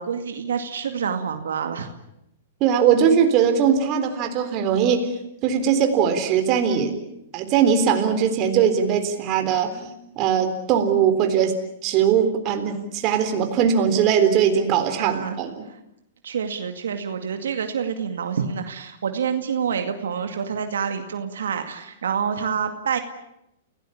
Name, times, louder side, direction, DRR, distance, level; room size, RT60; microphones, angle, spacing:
voice 1, 0.0-1.9 15.0-15.4 16.2-23.0, right 7 dB, 90° right, 7 dB, 2.3 m, -27 dB
voice 2, 2.6-5.1 5.4-7.0 7.3-9.9 10.2-11.5 11.8-15.7, right 7 dB, 35° right, 6 dB, 3.8 m, -20 dB
29.0 x 17.5 x 8.7 m, 0.82 s
hypercardioid pair, 140°, 0 cm